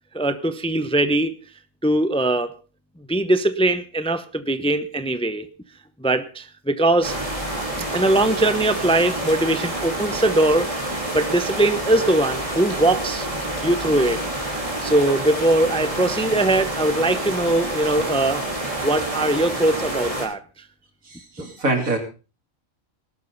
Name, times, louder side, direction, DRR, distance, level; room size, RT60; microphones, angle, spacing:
voice 1, 0.1-1.4 1.8-2.6 3.1-5.5 6.0-7.1 7.9-10.7 11.1-13.3 13.6-14.2 14.6-18.4 18.8-20.4, right 1 dB, 5° left, 11 dB, 0.7 m, -21 dB
sound 1, 7.0-20.3, right 1 dB, 25° right, 4.1 m, -28 dB
voice 2, 21.1-22.0, right 2 dB, 80° right, 3 dB, 3.6 m, -24 dB
18.0 x 12.5 x 4.0 m, 0.34 s
omnidirectional pair, 1.4 m